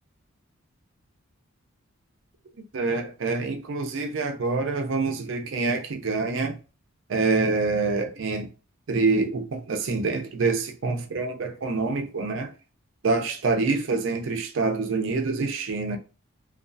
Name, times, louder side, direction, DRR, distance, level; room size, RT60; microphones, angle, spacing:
voice 1, 2.5-6.6 7.1-8.5 8.9-12.5 13.0-16.0, right 3 dB, 60° right, 0.4 m, -26 dB
2.3 x 2.3 x 2.5 m
head